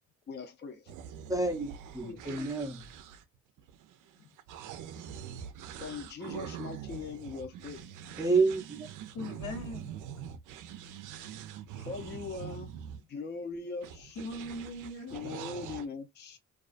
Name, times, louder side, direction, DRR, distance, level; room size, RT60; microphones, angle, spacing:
voice 1, 0.3-0.9 4.2-4.3 5.8-7.9 11.8-14.2 15.1-16.4, left 4 dB, 35° left, 0.5 m, -41 dB
sound 1, 0.9-13.0 13.8-15.9, right 8 dB, 85° right, 0.5 m, -44 dB
voice 2, 1.3-2.8 8.2-8.9, right 3 dB, 10° right, 0.5 m, -29 dB
voice 3, 2.0-2.5 9.1-9.9 14.2-15.2, left 2 dB, 75° left, 1.0 m, -40 dB
2.4 x 2.3 x 2.4 m
cardioid pair, 90°, 30 cm